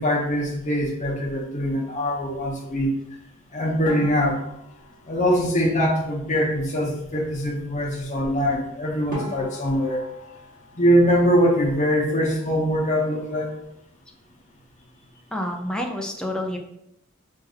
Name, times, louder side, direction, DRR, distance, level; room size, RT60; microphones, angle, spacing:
voice 1, 0.0-2.9 3.5-4.4 5.1-10.0 10.8-13.5, equal, 35° left, 0 dB, 0.8 m, -22 dB
sound 1, 3.8-6.3 8.6-8.7 9.1-11.9 12.1-12.9 13.2-13.4 13.7-13.8 14.4-14.8, equal, 40° right, 1.2 m, -41 dB
voice 2, 15.3-16.6, left 1 dB, 5° left, 2 dB, 0.3 m, -28 dB
5.0 x 2.6 x 2.4 m, 0.78 s
head